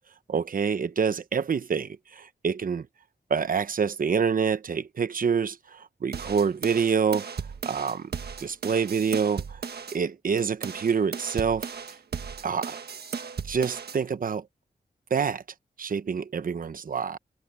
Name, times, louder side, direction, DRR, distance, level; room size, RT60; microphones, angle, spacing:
voice 1, 0.3-2.9 3.3-7.3 7.7-8.1 8.4-9.6 9.9-11.7 12.4-12.8 13.5-14.4 15.1-15.4 15.8-17.2, right 6 dB, 55° right, 0.9 m, -27 dB
sound 1, 6.1-10.0 10.4-14.0, right 6 dB, 75° right, 1.5 m, -36 dB
wide cardioid pair, 155°, 17 cm